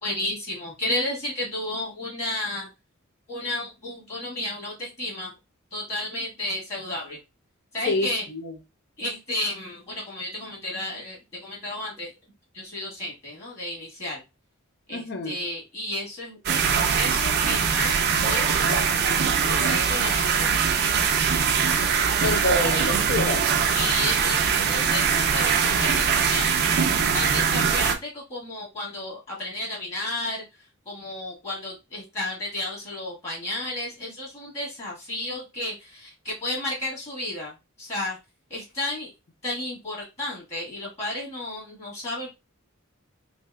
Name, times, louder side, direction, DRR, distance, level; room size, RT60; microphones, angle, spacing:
voice 1, 0.0-2.7 3.3-5.3 5.7-7.2 7.7-8.2 9.0-12.1 12.5-14.2 14.9-18.9 19.4-20.6 22.0-22.4 23.7-26.7 27.1-30.4 30.9-38.2 38.5-39.1 39.4-42.3, left 1 dB, 30° left, 1.8 m, -32 dB
voice 2, 7.9-8.5 14.9-15.3 22.2-23.5, left 2 dB, 55° left, 0.6 m, -27 dB
sound 1, 16.5-28.0, right 6 dB, 50° right, 0.5 m, -22 dB
3.5 x 2.7 x 2.3 m
head